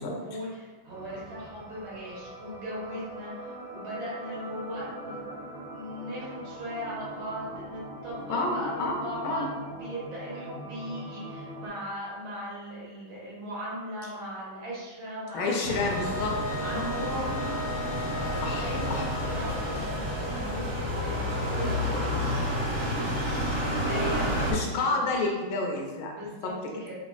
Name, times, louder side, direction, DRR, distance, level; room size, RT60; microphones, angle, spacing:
voice 1, 0.0-5.2 5.7-16.0 16.6-25.2 26.1-27.0, equal, 80° right, -7 dB, 2.0 m, -39 dB
sound 1, 0.9-11.7, right 1 dB, 60° right, 1.7 m, -42 dB
voice 2, 8.3-9.5 15.3-16.3 16.7-16.9 18.4-19.1 24.5-26.2 26.4-26.5, left 3 dB, 90° left, 0 dB, 1.5 m, -29 dB
sound 2, 15.6-24.5, equal, 45° right, 1.1 m, -30 dB
Wind instrument woodwind instrument, 15.9-20.6, left 2 dB, 70° left, 0.9 m, -37 dB
4.5 x 2.5 x 2.4 m, 1.3 s
omnidirectional pair, 2.2 m